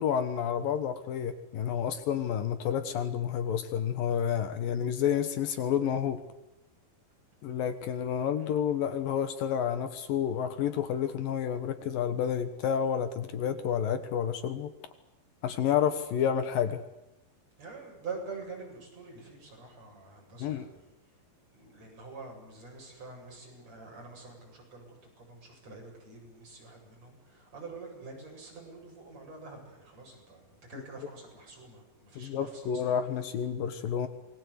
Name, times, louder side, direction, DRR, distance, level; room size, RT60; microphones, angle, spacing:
voice 1, 0.0-6.2 7.4-14.7 15.4-16.8 20.4-20.6 32.2-34.1, left 8 dB, 70° left, 10 dB, 2.9 m, -30 dB
voice 2, 17.6-20.8 21.5-30.4 30.7-33.0, right 4 dB, 45° right, 0 dB, 9.2 m, -46 dB
27.5 x 21.0 x 8.3 m, 0.93 s
omnidirectional pair, 4.3 m